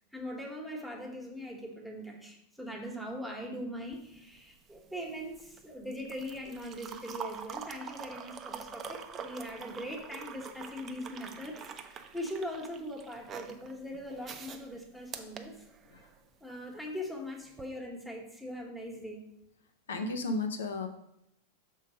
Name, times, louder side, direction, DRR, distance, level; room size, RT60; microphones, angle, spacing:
voice 1, 0.1-15.6 16.4-19.2, equal, ahead, 0 dB, 1.3 m, -41 dB
sound 1, 3.9-16.2 17.5-17.7, right 6 dB, 25° right, 0.6 m, -45 dB
voice 2, 19.9-20.9, left 2 dB, 65° left, 6 dB, 0.7 m, -33 dB
6.4 x 3.9 x 5.1 m, 0.78 s
figure-of-eight pair, 90°, 0 cm